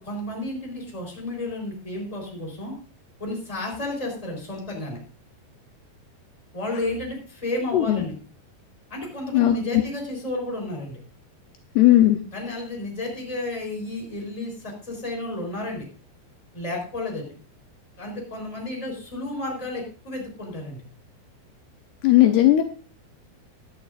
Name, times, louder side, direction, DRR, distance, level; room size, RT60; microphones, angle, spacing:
voice 1, 0.0-2.8 3.2-5.0 6.5-8.2 8.9-11.0 12.3-15.9 16.5-17.3 18.0-20.8, left 2 dB, 10° left, 0 dB, 3.6 m, -32 dB
voice 2, 7.7-8.0 9.3-9.8 11.8-12.2 22.0-22.6, left 14 dB, 75° left, 5 dB, 2.7 m, -17 dB
16.5 x 11.0 x 2.6 m, 0.37 s
omnidirectional pair, 5.0 m